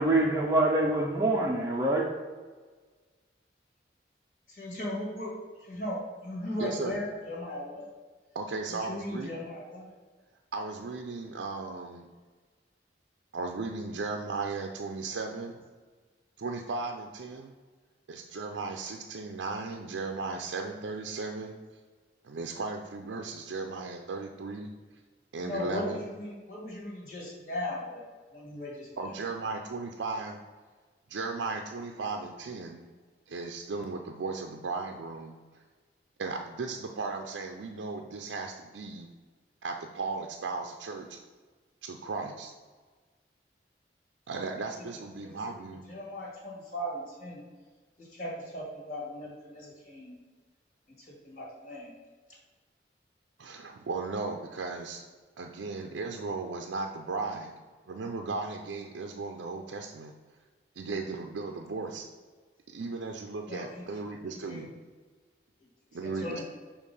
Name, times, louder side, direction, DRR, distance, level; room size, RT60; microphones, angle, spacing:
voice 1, 0.0-2.1, right 2 dB, 15° right, 0.5 m, -25 dB
voice 2, 4.6-5.3 5.6-7.9 8.7-9.9 25.4-28.0 28.3-28.9 45.2-45.4 45.9-47.4 48.0-50.2 51.2-51.9 63.5-63.8 64.5-64.7 66.0-66.5, left 1 dB, 45° left, 1.9 m, -37 dB
voice 3, 6.6-7.0 8.3-9.3 10.5-12.1 13.3-15.6 16.4-17.5 18.1-21.5 22.2-24.7 25.3-26.1 29.0-30.4 31.1-32.8 33.3-35.3 36.2-39.1 39.6-41.2 41.8-42.5 44.3-45.8 53.4-55.0 55.4-57.5 57.9-60.1 60.8-62.1 62.7-64.7 65.9-66.5, right 3 dB, 85° right, 0.5 m, -36 dB
6.5 x 2.9 x 5.3 m
head